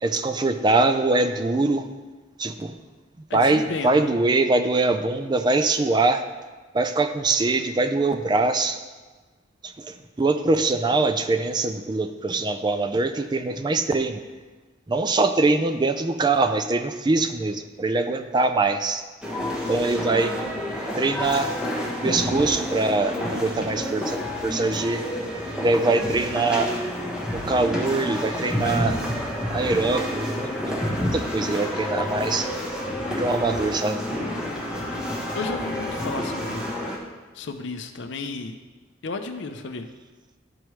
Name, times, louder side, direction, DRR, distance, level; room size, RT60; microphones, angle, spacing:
voice 1, 0.0-1.9 2.4-2.8 3.3-6.2 6.7-8.8 9.6-14.2 14.9-19.0 19.7-20.4 21.0-21.5 22.0-25.1 25.6-26.7 27.3-29.0 29.5-32.5 33.2-34.0, right 3 dB, 25° right, 9 dB, 0.4 m, -23 dB
voice 2, 3.3-4.1 35.3-36.7 37.3-38.6 39.0-39.9, left 3 dB, 70° left, 7 dB, 0.6 m, -33 dB
sound 1, 19.2-37.0, equal, 5° right, 1.1 m, -29 dB
12.5 x 4.6 x 3.1 m, 1.3 s
head